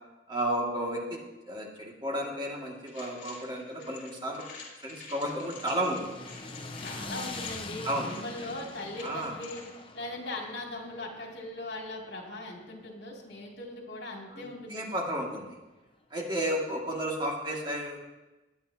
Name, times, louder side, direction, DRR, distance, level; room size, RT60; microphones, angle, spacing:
voice 1, 0.3-1.2 1.5-4.5 4.8-6.2 7.8-8.1 9.0-9.4 14.3-15.6 16.1-18.0, right 1 dB, 25° right, -2 dB, 2.1 m, -32 dB
sound 1, 2.9-9.7, left 4 dB, 50° left, 3.8 m, -48 dB
sound 2, 5.3-13.6, left 3 dB, 30° left, 1.0 m, -44 dB
voice 2, 6.8-9.6 9.9-15.2, left 2 dB, 65° left, -1 dB, 2.7 m, -40 dB
20.0 x 10.5 x 2.8 m, 1.1 s
head